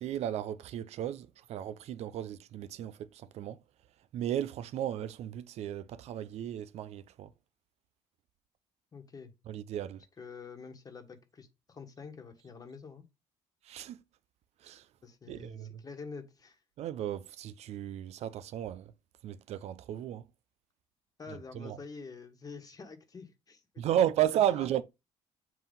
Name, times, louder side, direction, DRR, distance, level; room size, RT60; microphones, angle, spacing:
voice 1, 0.0-3.6 4.1-7.3 9.5-10.0 13.7-14.0 14.6-14.8 15.3-15.8 16.8-18.8 19.2-20.2 21.6-21.8 23.8-24.8, right 11 dB, 65° right, 0.5 m, -34 dB
voice 2, 8.9-9.3 10.2-13.0 15.0-16.6 21.2-23.8 24.2-24.8, left 5 dB, 30° left, 1.4 m, -47 dB
7.6 x 2.7 x 5.3 m
cardioid pair, 110°, 12 cm